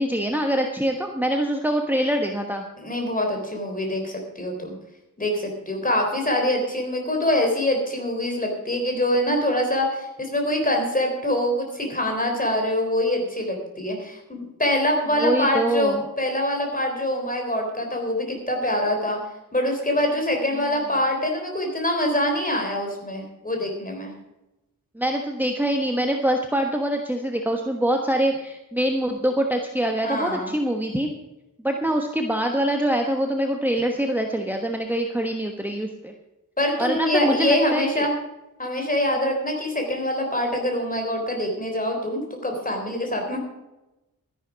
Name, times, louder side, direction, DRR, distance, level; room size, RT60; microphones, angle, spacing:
voice 1, 0.0-2.6 15.2-16.0 20.5-20.6 24.9-31.1 31.6-36.1 36.8-38.1, right 1 dB, 5° right, 3 dB, 1.2 m, -24 dB
voice 2, 2.8-4.7 5.2-19.2 19.5-24.1 30.0-30.6 36.6-38.1 38.6-43.4, left 1 dB, 25° left, 2 dB, 3.7 m, -24 dB
13.0 x 11.0 x 5.2 m, 0.96 s
wide cardioid pair, 125°, 34 cm